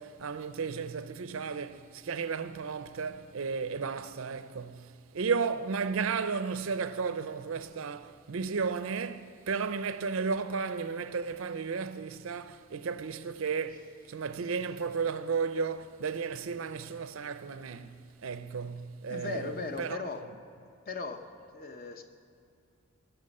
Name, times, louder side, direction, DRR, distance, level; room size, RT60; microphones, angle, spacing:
voice 1, 0.0-20.0, right 5 dB, 70° right, 0.5 m, -34 dB
voice 2, 19.1-20.2 20.9-22.0, left 4 dB, 40° left, 0.8 m, -38 dB
19.5 x 7.0 x 5.4 m
head